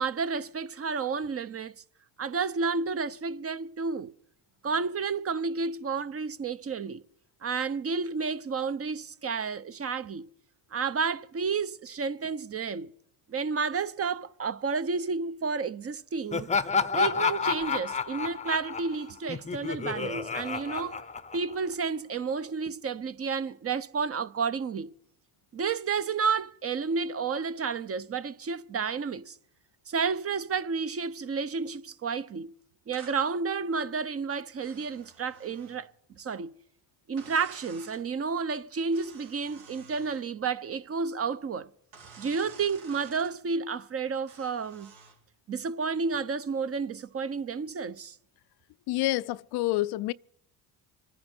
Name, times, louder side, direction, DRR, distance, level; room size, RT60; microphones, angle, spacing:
voice 1, 0.0-1.8 2.2-4.1 4.6-7.0 7.4-10.3 10.7-12.9 13.3-16.5 16.9-21.0 21.3-24.9 25.5-29.4 29.9-32.5 32.9-35.9 36.2-36.5 37.1-41.7 42.2-44.9 45.5-48.2, right 5 dB, 30° right, 0.7 m, -31 dB
Laughter, 16.3-21.7, left 5 dB, 15° left, 0.7 m, -30 dB
sound 1, 32.9-33.2 34.6-35.8 37.2-38.0 38.9-40.3 41.9-43.3 44.3-45.2, right 5 dB, 80° right, 4.2 m, -51 dB
voice 2, 48.9-50.1, left 17 dB, 60° left, 0.5 m, -28 dB
25.5 x 10.0 x 4.4 m
supercardioid pair, 80°, 44 cm